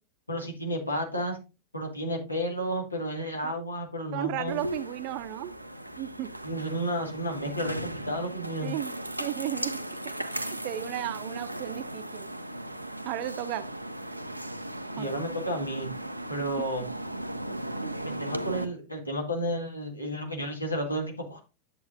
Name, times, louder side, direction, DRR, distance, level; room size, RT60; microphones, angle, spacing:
voice 1, 0.3-1.4 1.7-4.6 6.4-8.7 15.0-15.9 16.3-16.8 18.0-21.4, equal, 85° left, 2 dB, 1.9 m, -32 dB
voice 2, 4.1-5.5 6.0-6.3 8.6-12.3 13.0-13.7 15.0-15.2 17.8-18.0, right 14 dB, 45° right, 13 dB, 0.7 m, -35 dB
sound 1, 4.5-18.7, right 1 dB, 85° right, 0.5 m, -37 dB
9.4 x 7.7 x 2.6 m, 0.30 s
figure-of-eight pair, 90°, 0 cm